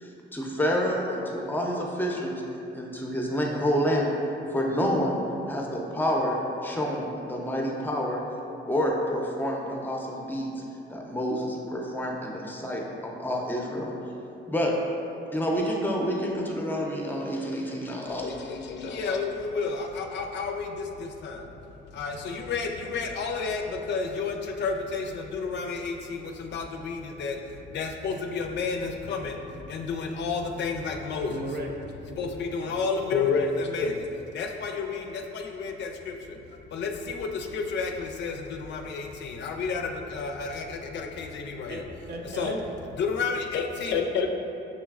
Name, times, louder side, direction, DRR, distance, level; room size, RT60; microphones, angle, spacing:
voice 1, 0.0-2.4 2.7-4.1 4.5-5.2 5.5-6.4 6.6-8.2 8.7-10.5 10.9-13.9 14.5-14.7 15.3-18.3, equal, 10° left, -1 dB, 0.6 m, -28 dB
voice 2, 18.1-21.5 21.9-31.3 32.2-34.1 34.3-41.8 42.3-42.6 43.0-44.3, left 4 dB, 65° left, 3 dB, 0.4 m, -31 dB
voice 3, 31.3-31.7 32.1-32.2 41.7-42.7, right 1 dB, 55° right, 0 dB, 0.6 m, -35 dB
6.1 x 3.1 x 2.4 m, 2.8 s
cardioid pair, 90°, 20 cm